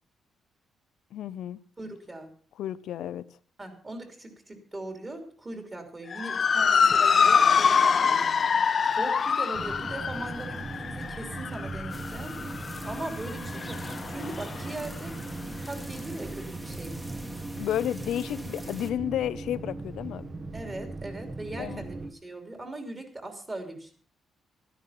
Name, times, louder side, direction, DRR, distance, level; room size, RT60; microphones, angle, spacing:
voice 1, 1.1-1.6 2.6-3.2 17.6-20.3 21.6-21.8, left 11 dB, 85° left, 0.7 m, -31 dB
voice 2, 1.8-2.3 3.6-8.4 8.8-12.4 12.8-17.0 20.5-23.9, right 2 dB, 25° right, 3.1 m, -40 dB
Motor vehicle (road) / Siren, 6.1-14.7, left 6 dB, 40° left, 0.7 m, -25 dB
sound 1, 9.5-22.1, right 2 dB, 40° right, 1.6 m, -39 dB
sound 2, 11.9-18.9, equal, 5° right, 1.5 m, -44 dB
13.0 x 10.5 x 5.7 m
cardioid pair, 125°, 0 cm